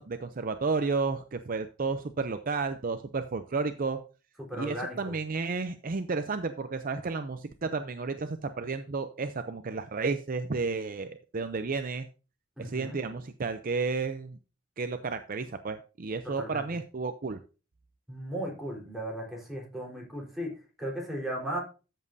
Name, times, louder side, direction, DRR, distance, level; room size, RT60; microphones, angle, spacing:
voice 1, 0.0-4.0 4.6-12.1 12.6-14.4 14.8-17.4, right 4 dB, 45° right, 9 dB, 0.5 m, -32 dB
voice 2, 4.5-5.1 12.6-13.0 16.4-16.6 18.1-20.5 20.8-21.6, right 1 dB, ahead, -3 dB, 4.1 m, -36 dB
13.5 x 7.4 x 2.7 m, 0.33 s
head